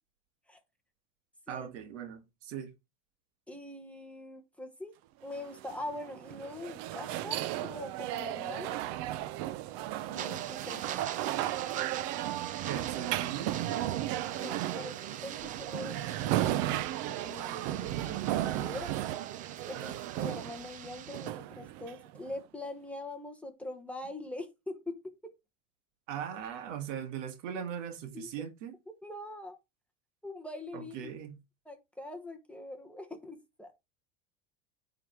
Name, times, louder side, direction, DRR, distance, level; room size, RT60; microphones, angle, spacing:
voice 1, 1.5-2.7 12.7-13.7 14.7-14.9 19.7-20.2 26.1-28.7 30.7-31.4, right 8 dB, 80° right, 1.9 m, -40 dB
voice 2, 3.5-4.9 5.2-8.8 10.0-10.9 13.6-14.0 14.3-18.9 19.7-25.3 28.1-28.3 29.0-29.6 30.2-31.1 31.6-33.7, left 1 dB, 5° left, 1.1 m, -43 dB
sound 1, 5.3-22.3, right 14 dB, 55° right, 0.7 m, -35 dB
sound 2, 10.2-21.3, right 10 dB, 25° right, 0.4 m, -44 dB
9.6 x 4.0 x 4.5 m
supercardioid pair, 145°, 37 cm